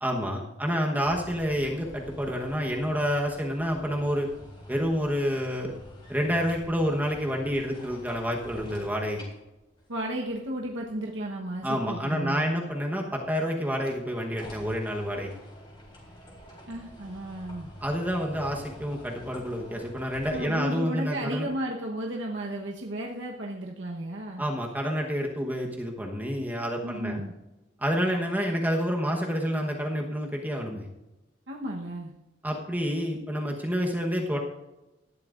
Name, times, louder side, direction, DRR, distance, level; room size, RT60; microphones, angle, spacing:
voice 1, 0.0-4.3 4.7-5.7 6.1-9.2 11.6-15.3 17.8-21.5 24.4-27.2 27.8-30.9 32.4-34.4, equal, 10° right, 0 dB, 1.1 m, -28 dB
sound 1, 1.0-11.3 13.7-20.6, equal, 25° left, 3.7 m, -48 dB
voice 2, 9.9-12.7 16.7-17.7 20.3-24.5 26.8-27.3 31.5-32.1, right 1 dB, 85° right, -1 dB, 1.2 m, -34 dB
18.5 x 11.5 x 2.6 m, 1.0 s
head